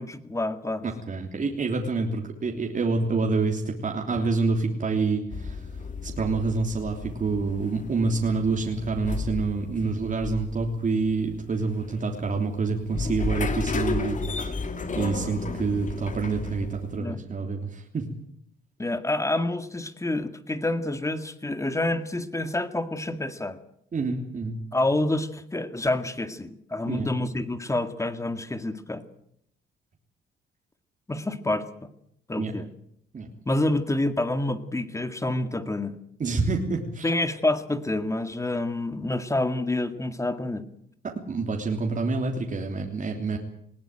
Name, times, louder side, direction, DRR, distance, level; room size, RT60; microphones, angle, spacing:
voice 1, 0.0-0.8 17.0-17.2 18.8-23.6 24.7-29.0 31.1-31.9 32.3-32.7 33.5-36.0 37.0-40.7, left 2 dB, 15° left, 10 dB, 2.0 m, -28 dB
voice 2, 0.8-14.5 14.9-18.1 23.9-24.5 26.8-27.1 32.4-32.5 33.1-33.3 36.2-37.1 41.0-43.4, right 4 dB, 40° right, 1 dB, 3.2 m, -27 dB
sound 1, 5.3-17.0, left 4 dB, 40° left, 2.7 m, -33 dB
20.0 x 17.5 x 9.0 m, 0.73 s
cardioid pair, 90°, 20 cm